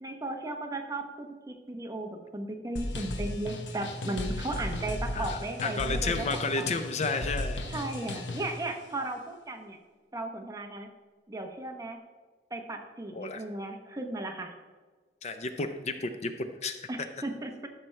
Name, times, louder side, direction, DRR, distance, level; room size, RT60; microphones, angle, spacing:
voice 1, 0.0-6.8 7.7-9.8 10.1-10.9 11.3-12.0 12.5-14.5 16.9-17.7, right 2 dB, 20° right, 4 dB, 0.9 m, -36 dB
sound 1, 2.8-8.6, left 1 dB, 80° left, 1.0 m, -35 dB
voice 2, 5.1-7.6 13.1-13.4 15.2-16.8, left 3 dB, 40° left, 8 dB, 0.5 m, -32 dB
13.0 x 5.9 x 3.3 m, 1.4 s
head